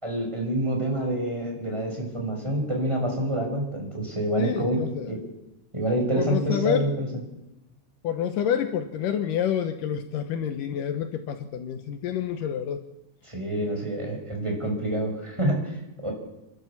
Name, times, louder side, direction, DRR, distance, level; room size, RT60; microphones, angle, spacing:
voice 1, 0.0-4.8 5.1-5.2 5.7-7.1 13.2-16.1, right 1 dB, 10° right, 0 dB, 5.6 m, -27 dB
voice 2, 4.4-5.1 6.2-6.9 8.0-12.8, left 9 dB, 75° left, 8 dB, 2.5 m, -28 dB
29.0 x 12.5 x 7.3 m, 0.92 s
omnidirectional pair, 4.0 m